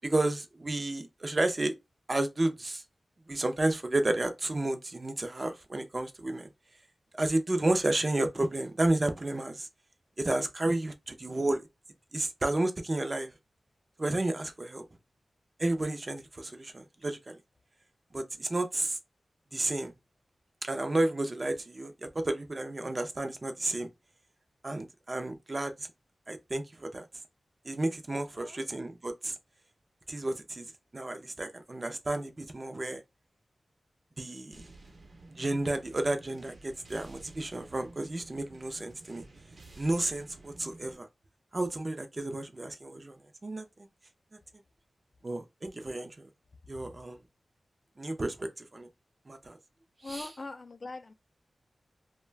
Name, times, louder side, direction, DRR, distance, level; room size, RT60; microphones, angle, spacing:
voice 1, 0.0-1.7 2.1-2.8 3.3-6.5 7.2-9.7 10.2-11.6 12.1-13.3 14.0-14.8 15.6-17.4 18.1-19.0 19.5-19.9 20.6-23.9 24.6-25.9 26.3-27.0 27.7-29.4 30.1-30.7 30.9-33.0 34.2-34.6 35.3-39.2 39.8-41.1 41.5-43.2 43.4-43.9 45.2-46.3 46.7-47.2 48.0-48.9 49.3-49.6 50.0-50.3, right 2 dB, 35° right, 0.5 m, -31 dB
voice 2, 28.3-28.7 46.7-46.9 50.0-51.1, left 3 dB, 45° left, 0.3 m, -42 dB
sound 1, 34.5-41.0, right 2 dB, 60° right, 0.8 m, -52 dB
2.3 x 2.1 x 3.3 m
wide cardioid pair, 115°, 0 cm